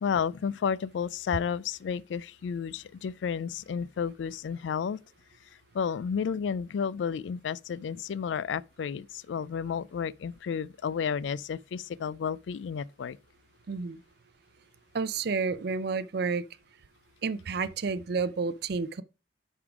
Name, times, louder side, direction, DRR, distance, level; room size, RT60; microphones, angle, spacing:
voice 1, 0.0-5.0 5.7-13.2, left 7 dB, 90° left, 0.3 m, -32 dB
voice 2, 13.7-14.0 14.9-16.4 17.2-19.0, right 4 dB, 60° right, 0.5 m, -30 dB
9.6 x 3.7 x 4.8 m
head